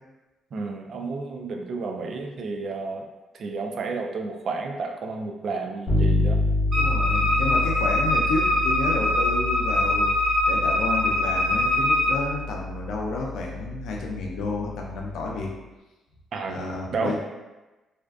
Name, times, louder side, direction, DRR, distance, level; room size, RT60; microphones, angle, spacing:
voice 1, 0.5-3.1 3.3-6.4 16.3-16.6 16.9-17.2, right 4 dB, 60° right, 3 dB, 0.3 m, -31 dB
Bass guitar, 5.9-15.5, left 2 dB, 30° left, 0.9 m, -28 dB
voice 2, 6.7-15.5 16.5-17.2, left 3 dB, 80° left, -1 dB, 0.4 m, -31 dB
Wind instrument woodwind instrument, 6.7-12.2, left 1 dB, 40° right, 0.8 m, -23 dB
2.4 x 2.3 x 2.2 m, 1.1 s
cardioid pair, 90°, 0 cm